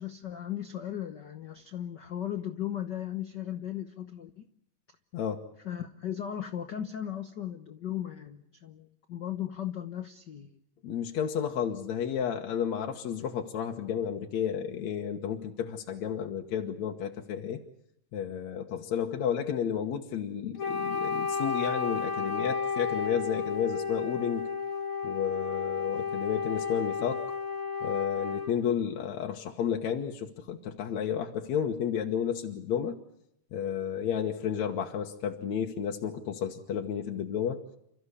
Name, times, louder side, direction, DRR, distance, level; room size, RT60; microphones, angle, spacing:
voice 1, 0.0-4.5 5.6-10.5, left 11 dB, 90° left, 8 dB, 0.9 m, -37 dB
voice 2, 5.1-5.4 10.8-17.6 18.1-24.5 25.0-27.3 27.8-33.0 33.5-37.6, left 8 dB, 65° left, 2 dB, 2.5 m, -32 dB
Wind instrument woodwind instrument, 20.6-28.6, left 5 dB, 50° left, 2.0 m, -32 dB
30.0 x 14.0 x 9.8 m, 0.77 s
omnidirectional pair, 3.7 m